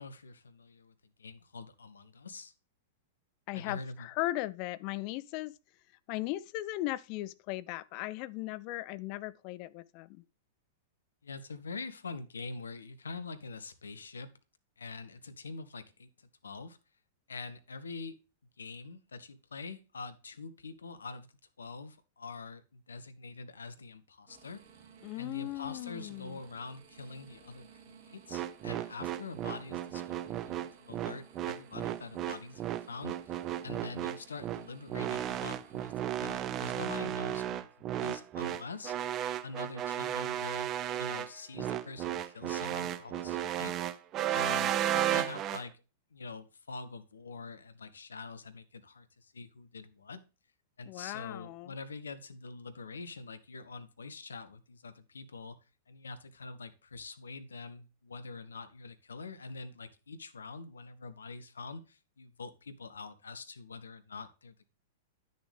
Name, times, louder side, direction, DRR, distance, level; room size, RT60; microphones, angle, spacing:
voice 1, 0.0-2.5 3.6-4.1 11.2-14.3 14.8-16.1 16.4-16.8 17.3-18.2 18.6-21.3 21.6-24.6 25.1-35.9 36.2-39.1 39.4-43.7 44.3-45.8 46.1-50.2 50.8-55.6 55.9-64.7, left 4 dB, 70° left, 0.9 m, -45 dB
voice 2, 3.5-5.5 6.1-10.2 25.0-26.4 50.9-51.7, left 17 dB, 40° left, 0.4 m, -37 dB
sound 1, 24.3-37.1, right 6 dB, 45° right, 1.5 m, -57 dB
sound 2, 28.3-45.6, right 11 dB, 30° right, 0.5 m, -34 dB
10.0 x 6.6 x 3.3 m
figure-of-eight pair, 100°, 0 cm